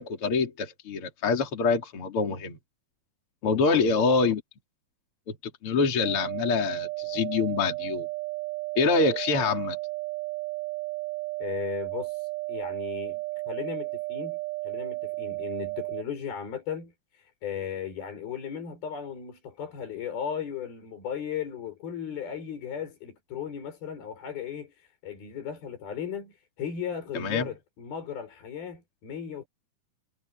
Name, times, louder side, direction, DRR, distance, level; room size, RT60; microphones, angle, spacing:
voice 1, 0.0-2.6 3.4-4.4 5.3-5.4 5.6-8.1 8.8-9.8 27.1-27.5, left 4 dB, 40° left, 3.5 m, -25 dB
voice 2, 3.4-4.2 11.4-14.4 14.6-29.5, left 8 dB, 75° left, 7.5 m, -36 dB
sound 1, 6.0-16.0, right 24 dB, 70° right, 2.6 m, -34 dB
omnidirectional pair, 4.4 m